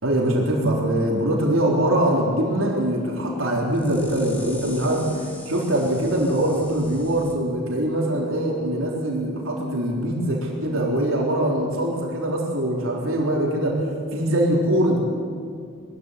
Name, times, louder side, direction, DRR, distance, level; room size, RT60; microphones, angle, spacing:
voice 1, 0.0-5.0 5.5-13.8 14.1-15.0, right 1 dB, 80° right, -2 dB, 3.8 m, -22 dB
sound 1, 1.9-7.3, left 1 dB, 10° left, 2.4 m, -42 dB
21.5 x 14.5 x 9.8 m, 2.2 s
head